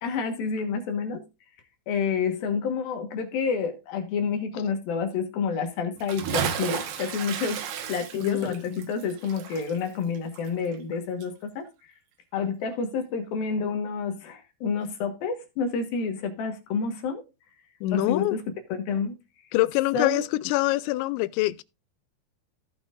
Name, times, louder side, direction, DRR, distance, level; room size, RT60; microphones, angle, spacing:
voice 1, 0.0-1.3 1.9-7.6 7.9-11.7 12.3-17.2 17.9-18.4 18.7-19.2 19.9-20.2, left 5 dB, 65° left, 2.7 m, -29 dB
Bathtub (filling or washing) / Splash splatter, 6.0-10.9 11.2-11.3, right 8 dB, 70° right, 2.1 m, -33 dB
voice 2, 8.2-8.9 17.8-18.4 19.5-21.6, left 17 dB, 80° left, 2.7 m, -25 dB
16.5 x 5.9 x 2.5 m
omnidirectional pair, 5.5 m